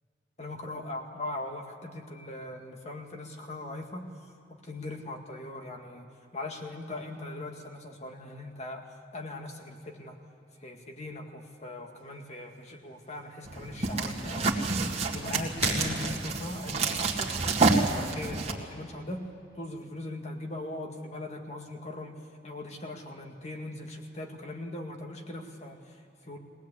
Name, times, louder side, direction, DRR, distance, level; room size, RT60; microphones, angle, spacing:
voice 1, 0.4-4.1 4.6-10.2 10.6-14.9 15.1-17.4 17.8-19.3 19.6-22.2 22.4-26.4, left 1 dB, 40° left, 3 dB, 2.1 m, -40 dB
sound 1, 12.0-18.9, left 1 dB, 70° left, 5.6 m, -42 dB
sound 2, 13.4-18.5, right 3 dB, 35° right, 2.0 m, -28 dB
22.0 x 18.5 x 8.5 m, 2.7 s
head